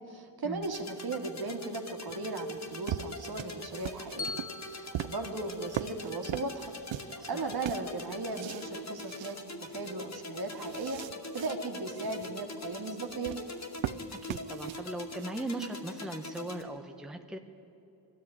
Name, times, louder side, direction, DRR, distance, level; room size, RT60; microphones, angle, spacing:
voice 1, 0.1-4.3 4.7-11.0 11.3-13.4, right 3 dB, 55° right, 4 dB, 2.5 m, -37 dB
sound 1, 0.6-16.6, left 2 dB, 35° left, 2.3 m, -43 dB
sound 2, 2.1-7.2 7.4-8.7 9.0-9.4 9.8-9.9 10.2-11.5 11.9-12.3 13.1-15.3, right 12 dB, 90° right, 0.7 m, -40 dB
Bell, 4.2-6.4, left 4 dB, 55° left, 2.1 m, -43 dB
voice 2, 14.3-17.4, right 1 dB, ahead, 4 dB, 1.0 m, -38 dB
23.0 x 14.0 x 9.5 m, 2.9 s
wide cardioid pair, 130°, 45 cm